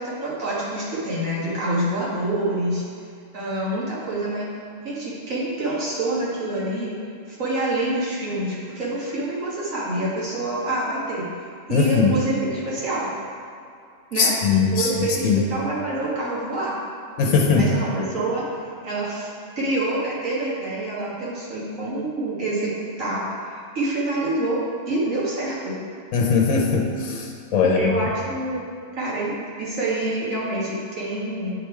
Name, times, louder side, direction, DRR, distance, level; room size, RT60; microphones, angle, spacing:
voice 1, 0.0-2.8 3.3-4.5 4.8-6.9 7.3-11.3 11.7-13.1 14.1-14.3 14.7-16.7 17.6-18.4 18.8-19.3 19.6-22.7 23.0-24.6 24.9-25.8 27.8-28.6 28.9-29.3 29.6-31.5, right 1 dB, 80° right, -7 dB, 1.9 m, -26 dB
voice 2, 11.7-12.2 14.2-14.9 15.2-15.4 17.2-17.7 26.1-27.9, left 5 dB, 75° left, 0 dB, 1.1 m, -20 dB
8.8 x 3.4 x 4.5 m, 2.4 s
omnidirectional pair, 1.4 m